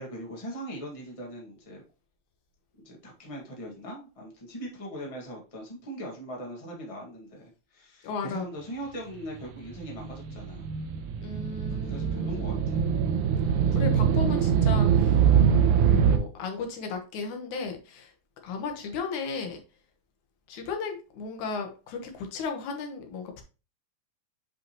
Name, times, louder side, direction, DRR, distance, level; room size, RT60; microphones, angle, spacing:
voice 1, 0.0-1.8 2.7-10.7 11.7-12.9, equal, 15° left, -1 dB, 1.5 m, -40 dB
voice 2, 8.0-8.5 11.2-12.6 13.7-15.2 15.9-18.1 18.4-19.6 20.5-23.4, left 4 dB, 85° left, 4 dB, 2.7 m, -35 dB
sound 1, 9.7-16.2, right 7 dB, 90° right, 2.3 m, -23 dB
7.6 x 5.3 x 3.0 m, 0.32 s
omnidirectional pair, 3.3 m